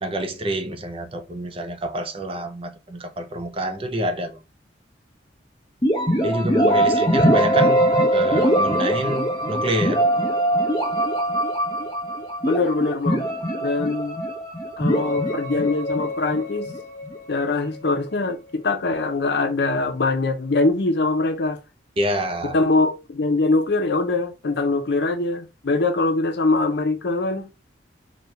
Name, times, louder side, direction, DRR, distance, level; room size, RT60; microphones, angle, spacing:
voice 1, 0.0-4.4 6.2-7.8 8.1-10.1 22.0-22.6, right 1 dB, 30° right, 0.6 m, -27 dB
sound 1, 5.8-17.5, right 1 dB, 25° left, 0.9 m, -22 dB
voice 2, 12.5-13.3 13.6-14.2 14.8-16.7 17.3-21.6 22.5-27.5, left 3 dB, 65° left, 0.7 m, -22 dB
4.2 x 2.3 x 3.2 m
head